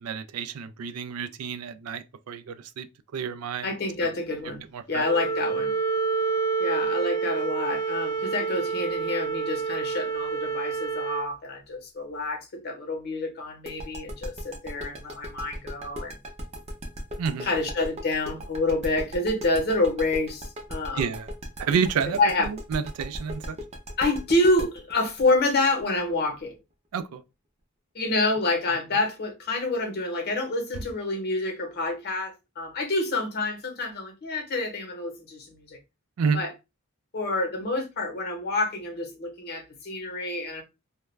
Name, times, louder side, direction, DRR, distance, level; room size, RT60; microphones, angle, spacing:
voice 1, 0.0-2.9 3.1-3.7 4.7-5.1 17.2-17.5 21.0-21.3 21.6-23.6 26.9-27.2 36.2-36.4, right 6 dB, 85° right, 0.4 m, -29 dB
voice 2, 3.6-5.8 6.6-16.2 17.4-21.1 22.2-22.5 24.0-26.6 27.9-35.8 36.3-36.5 37.1-40.6, left 2 dB, 50° left, 0.8 m, -28 dB
Wind instrument woodwind instrument, 5.0-11.3, right 5 dB, 15° left, 0.3 m, -28 dB
sound 1, 13.7-26.4, equal, 30° right, 0.6 m, -37 dB
2.3 x 2.1 x 3.1 m
head